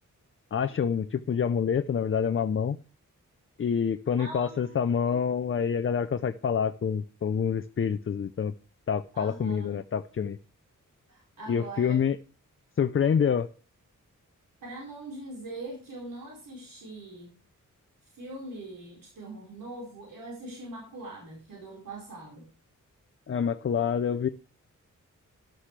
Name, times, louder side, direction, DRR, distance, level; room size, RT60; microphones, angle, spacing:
voice 1, 0.5-2.8 3.6-8.5 8.9-10.4 11.5-12.2 12.8-13.5 23.3-24.3, left 7 dB, 40° left, 10 dB, 0.5 m, -27 dB
voice 2, 4.2-5.2 9.1-9.7 11.1-12.0 14.6-17.3 18.1-22.4, right 2 dB, 90° right, -2 dB, 4.7 m, -42 dB
13.5 x 11.5 x 3.3 m, 0.39 s
wide cardioid pair, 130°, 32 cm